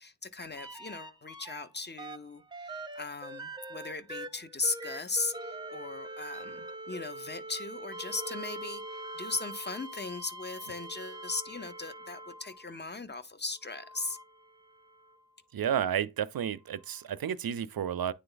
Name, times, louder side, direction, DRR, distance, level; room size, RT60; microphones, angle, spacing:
voice 1, 0.0-14.2, left 3 dB, 25° left, 0.7 m, -38 dB
sound 1, 0.6-1.6 2.0-12.8 13.6-15.2 16.9-17.0, right 1 dB, 10° right, 0.8 m, -43 dB
voice 2, 15.5-18.1, right 9 dB, 60° right, 0.5 m, -31 dB
9.8 x 3.4 x 3.9 m
wide cardioid pair, 95°, 41 cm